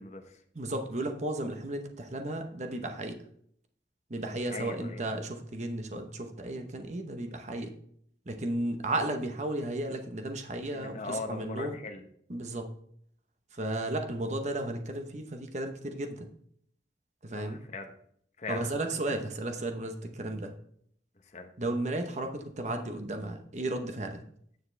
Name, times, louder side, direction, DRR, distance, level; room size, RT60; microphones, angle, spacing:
voice 1, 0.0-0.4 4.5-5.0 10.7-12.1 17.4-17.9 18.4-18.7 21.3-21.5, left 3 dB, 40° left, 6 dB, 0.9 m, -39 dB
voice 2, 0.5-3.2 4.1-7.7 8.3-11.8 12.3-12.7 13.5-16.3 17.2-17.6 18.5-20.5 21.6-24.2, right 1 dB, 40° right, 5 dB, 0.8 m, -34 dB
9.5 x 6.6 x 3.3 m, 0.66 s
head